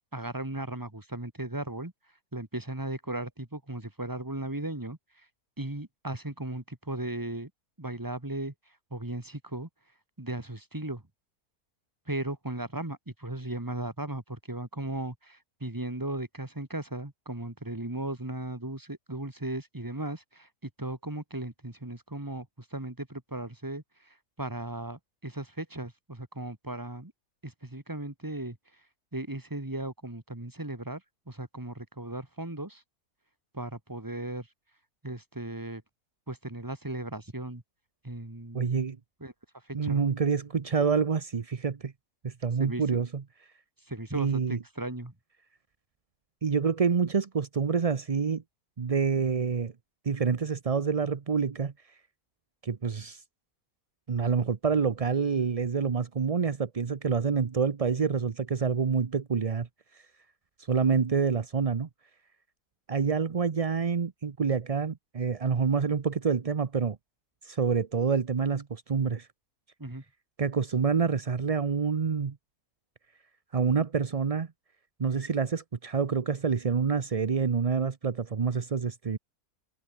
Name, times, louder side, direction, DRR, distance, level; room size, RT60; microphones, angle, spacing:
voice 1, 0.1-1.9 2.3-5.3 5.6-7.5 7.8-8.5 8.9-9.7 10.2-11.0 12.1-27.1 27.4-28.6 29.1-31.0 31.3-32.8 33.5-34.5 35.0-35.8 36.3-37.6 38.0-38.8 39.2-39.3 39.6-40.1 42.6-43.1 43.9-45.1 69.8-70.0, right 1 dB, 15° right, 2.1 m, -36 dB
voice 2, 38.5-39.0 39.7-41.9 42.2-43.2 44.1-44.6 46.4-48.4 48.8-49.7 50.0-51.7 52.6-53.2 54.1-59.7 59.9-60.0 60.7-61.9 62.9-67.0 67.4-69.3 70.4-72.4 73.5-74.5 75.0-79.2, right 5 dB, 35° right, 0.6 m, -27 dB
omnidirectional pair, 1.6 m